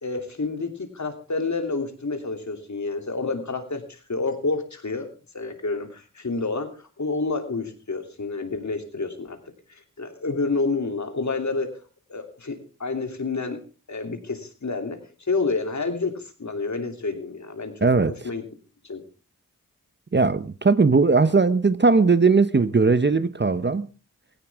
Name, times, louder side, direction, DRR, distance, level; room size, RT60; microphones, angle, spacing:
voice 1, 0.0-5.1 5.3-9.4 9.7-11.8 12.1-13.6 13.9-17.9 18.2-18.4 18.8-19.0, left 3 dB, 60° left, 2.9 m, -29 dB
voice 2, 17.8-18.1 20.1-23.9, right 4 dB, 35° right, 0.8 m, -19 dB
16.5 x 16.5 x 3.5 m
wide cardioid pair, 55°, 33 cm